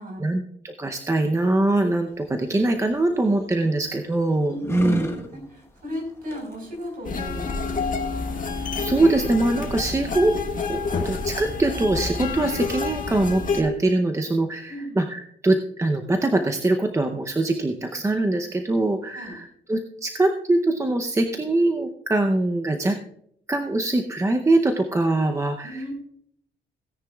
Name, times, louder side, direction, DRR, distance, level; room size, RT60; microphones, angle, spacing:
voice 1, 0.2-5.2 8.8-10.3 10.7-23.0 23.5-25.9, right 2 dB, 15° right, 5 dB, 0.6 m, -23 dB
sound 1, 2.1-8.1, left 2 dB, 15° left, 1.2 m, -38 dB
voice 2, 4.5-8.4 14.7-15.1 19.1-19.4 25.6-25.9, equal, 45° right, 2 dB, 4.5 m, -36 dB
sound 2, 7.0-13.6, left 4 dB, 40° left, 1.4 m, -28 dB
17.0 x 9.9 x 2.3 m, 0.68 s
wide cardioid pair, 150°, 20 cm